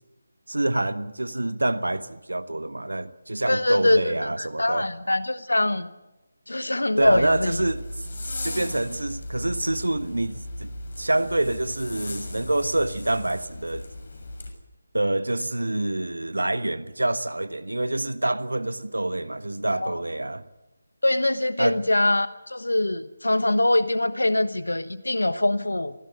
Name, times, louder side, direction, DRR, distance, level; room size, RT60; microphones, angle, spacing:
voice 1, 0.5-4.9 7.0-7.8 8.4-13.9 14.9-20.4 21.6-21.8, right 1 dB, 75° right, 1.4 m, -26 dB
voice 2, 3.5-5.9 6.5-7.6 19.7-20.0 21.0-25.9, left 1 dB, 75° left, 1.2 m, -23 dB
Zipper (clothing), 7.0-14.5, left 1 dB, 55° left, 6.6 m, -36 dB
24.0 x 17.0 x 8.3 m
figure-of-eight pair, 155°, 0 cm